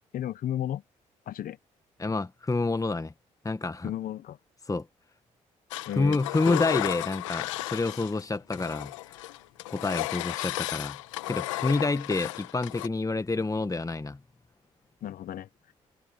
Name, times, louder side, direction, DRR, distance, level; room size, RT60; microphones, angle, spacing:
voice 1, 0.1-0.8 1.3-1.6 3.8-4.4 5.9-6.2 6.5-6.7 15.0-15.5, left 11 dB, 65° left, 1.1 m, -33 dB
voice 2, 2.0-3.1 3.4-3.9 4.7-4.9 5.9-8.9 9.7-11.0 11.3-14.2, left 3 dB, 20° left, 1.6 m, -28 dB
Engine, 5.7-8.2 8.5-12.9, left 18 dB, 90° left, 1.2 m, -34 dB
hypercardioid pair, 50°, 16 cm